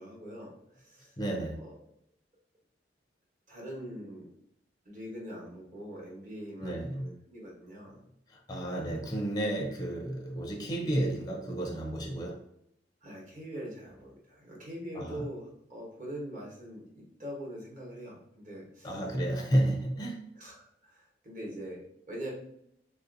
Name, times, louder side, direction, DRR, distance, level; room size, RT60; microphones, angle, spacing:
voice 1, 0.0-1.1 1.6-1.8 3.5-4.3 4.8-8.0 8.6-8.9 13.0-18.9 19.9-20.0 20.3-22.3, equal, 40° right, -3 dB, 1.0 m, -43 dB
voice 2, 1.2-1.6 6.6-7.2 8.3-12.4 14.9-15.3 18.8-20.3, right 1 dB, 20° left, 1 dB, 0.5 m, -32 dB
3.2 x 2.7 x 2.5 m, 0.72 s
head